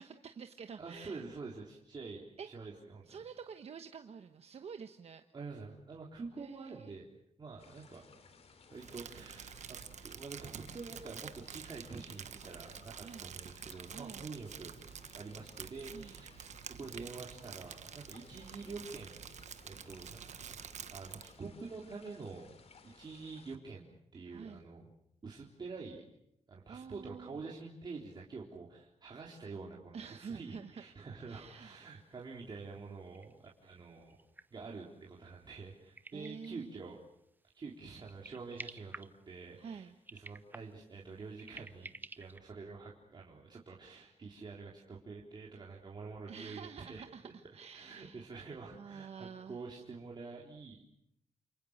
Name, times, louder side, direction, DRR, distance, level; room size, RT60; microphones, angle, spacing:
voice 1, 0.0-1.2 2.4-2.5 3.1-5.2 6.4-7.0 13.0-13.3 13.9-14.3 15.9-16.1 24.3-24.6 26.7-27.5 29.9-30.7 31.3-31.8 36.1-36.7 39.6-39.9 46.3-48.3 48.7-49.6, right 6 dB, 65° right, 7 dB, 1.3 m, -48 dB
voice 2, 0.8-3.2 5.3-7.1 7.4-8.0 8.7-14.7 15.1-16.5 16.8-19.2 19.6-22.5 22.8-24.9 25.2-26.0 26.5-34.2 34.5-37.0 37.5-41.9 42.2-47.1 47.7-50.8, right 4 dB, 40° right, -2 dB, 3.7 m, -47 dB
sound 1, 7.6-23.6, left 4 dB, 65° left, 3.2 m, -60 dB
Crumpling crinkling, 8.8-21.4, right 8 dB, 90° right, 1.2 m, -49 dB
sound 2, 31.6-31.7 32.0-32.1 32.5-36.9 37.4-37.7 38.0-39.6 40.0-42.4, right 2 dB, 15° right, 1.0 m, -51 dB
29.0 x 28.0 x 6.6 m, 0.77 s
wide cardioid pair, 165°, 12 cm